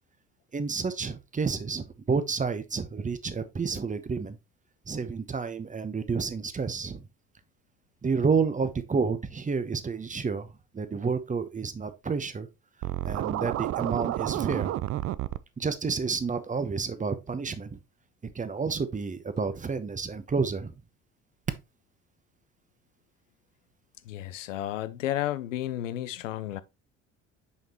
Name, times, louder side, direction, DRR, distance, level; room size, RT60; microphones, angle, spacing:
voice 1, 0.5-4.4 4.9-7.1 8.0-12.5 13.0-14.7 15.6-17.8 18.2-20.7, right 5 dB, 20° right, 0.9 m, -30 dB
Scratching (performance technique), 12.8-15.4, right 14 dB, 40° right, 0.4 m, -30 dB
voice 2, 24.0-26.6, left 13 dB, 85° left, 0.5 m, -32 dB
6.5 x 5.1 x 2.9 m
hypercardioid pair, 60°, 37 cm